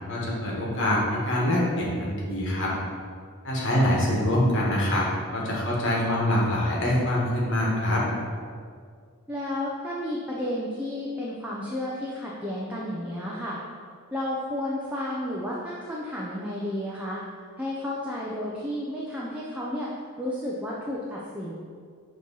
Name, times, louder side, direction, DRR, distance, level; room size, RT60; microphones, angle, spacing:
voice 1, 0.1-2.7 3.4-5.0 5.3-8.0, left 1 dB, 55° left, -4 dB, 1.4 m, -24 dB
voice 2, 9.3-13.6 14.1-17.2 17.6-19.9 20.2-21.5, left 1 dB, 5° right, -5 dB, 0.5 m, -32 dB
6.9 x 3.1 x 5.4 m, 2.1 s
head